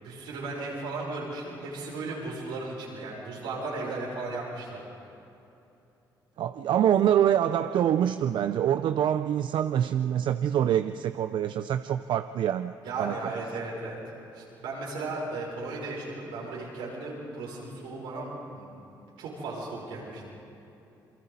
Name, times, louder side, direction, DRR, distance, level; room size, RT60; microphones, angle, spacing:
voice 1, 0.0-4.8 12.8-14.0 14.3-18.7 19.2-20.3, right 3 dB, 90° right, -4 dB, 5.9 m, -36 dB
voice 2, 6.4-13.1, right 10 dB, 65° right, 11 dB, 0.5 m, -25 dB
28.0 x 23.5 x 4.1 m, 2.8 s
supercardioid pair, 60°, 9 cm